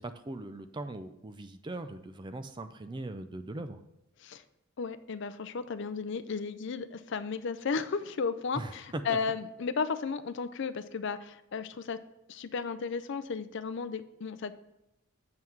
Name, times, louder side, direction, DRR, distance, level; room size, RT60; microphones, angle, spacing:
voice 1, 0.0-3.8 8.5-9.2, right 2 dB, 20° right, 9 dB, 0.4 m, -40 dB
voice 2, 4.8-12.0 12.3-14.5, left 5 dB, 55° left, 13 dB, 0.4 m, -34 dB
7.7 x 5.7 x 4.5 m, 0.89 s
head